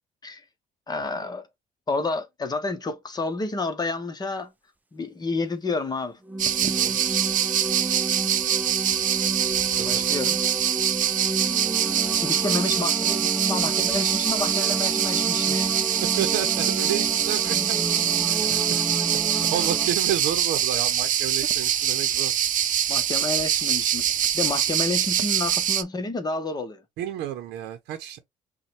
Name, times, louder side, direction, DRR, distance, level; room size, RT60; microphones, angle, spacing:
voice 1, 0.9-1.5 1.9-4.5 4.9-6.2 9.8-10.4 12.2-15.8 22.9-26.8, left 3 dB, 25° left, 0.9 m, -30 dB
sound 1, 6.2-19.9, right 2 dB, 10° right, 0.5 m, -31 dB
sound 2, 6.4-25.8, right 10 dB, 50° right, 0.6 m, -24 dB
voice 2, 6.7-7.2 9.7-10.2 15.9-17.8 18.3-18.8 19.3-22.3 27.0-28.2, right 11 dB, 85° right, 0.7 m, -31 dB
5.3 x 2.3 x 3.1 m
cardioid pair, 110°, 17 cm